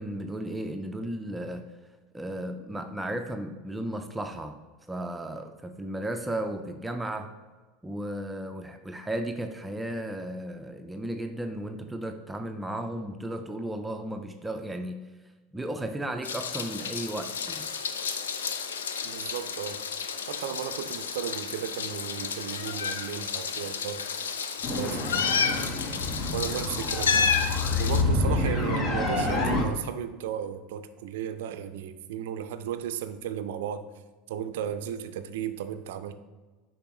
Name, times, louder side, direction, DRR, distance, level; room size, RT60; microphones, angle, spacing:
voice 1, 0.0-1.6 2.1-4.6 4.9-7.3 7.8-15.0 15.5-17.7, right 1 dB, 10° right, 6 dB, 0.5 m, -34 dB
Meow, 16.2-28.0, left 6 dB, 80° left, 0.4 m, -31 dB
voice 2, 19.0-19.8 20.3-24.0 24.6-25.6 26.3-27.3 27.8-33.8 34.3-36.1, right 9 dB, 65° right, 11 dB, 0.4 m, -35 dB
sound 1, 24.6-29.6, left 2 dB, 40° left, 1.0 m, -28 dB
6.7 x 5.1 x 3.0 m, 1.3 s
figure-of-eight pair, 75°, 0 cm